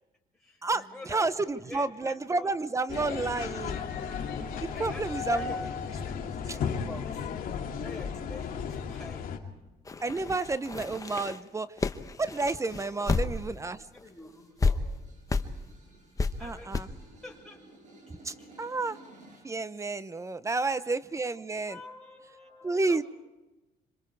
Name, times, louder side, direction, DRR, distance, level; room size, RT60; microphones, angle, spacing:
voice 1, 0.3-3.3 4.7-7.3 7.8-9.3 13.0-13.4 13.9-14.8 16.4-17.6 18.4-18.5 20.7-20.9 21.7-23.0, left 2 dB, 5° left, -2 dB, 6.9 m, -48 dB
voice 2, 1.1-3.8 4.6-5.5 10.0-11.7 12.2-13.9 16.4-16.9 18.2-19.0 19.4-21.8 22.6-23.0, right 3 dB, 15° right, 15 dB, 0.8 m, -30 dB
sound 1, 2.9-9.4, left 6 dB, 55° left, 2.8 m, -34 dB
sound 2, 9.9-13.7 14.0-14.1 14.6-14.7 15.3-15.5 16.2-16.3 16.7-16.8, left 4 dB, 20° left, 1.0 m, -30 dB
sound 3, 13.9-19.6, right 2 dB, 45° right, 7.2 m, -55 dB
26.5 x 26.0 x 4.8 m, 1.1 s
cardioid pair, 110°, 17 cm